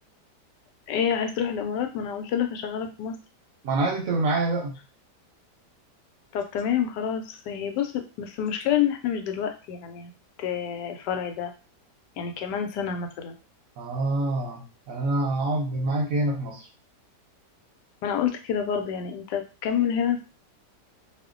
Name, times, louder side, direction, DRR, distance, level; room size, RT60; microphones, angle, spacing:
voice 1, 0.9-3.1 6.3-10.1 10.4-11.5 12.2-13.3 18.0-20.2, left 8 dB, 85° left, 5 dB, 1.2 m, -28 dB
voice 2, 3.6-4.8 13.8-16.7, right 2 dB, 70° right, 2 dB, 0.8 m, -26 dB
2.8 x 2.1 x 3.6 m, 0.33 s
omnidirectional pair, 1.8 m